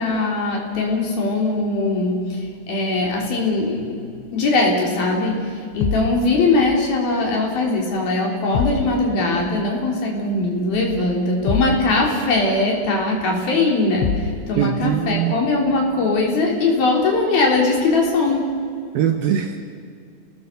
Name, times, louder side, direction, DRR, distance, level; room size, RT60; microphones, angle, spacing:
voice 1, 0.0-18.5, left 2 dB, 55° left, 0 dB, 5.4 m, -21 dB
sound 1, 5.8-6.2 8.5-8.9 11.5-11.8 14.0-14.4, left 6 dB, 85° left, 3.6 m, -23 dB
voice 2, 14.6-15.4 18.9-19.6, right 9 dB, 70° right, 6 dB, 2.4 m, -21 dB
30.0 x 20.0 x 6.9 m, 2.2 s
omnidirectional pair, 5.1 m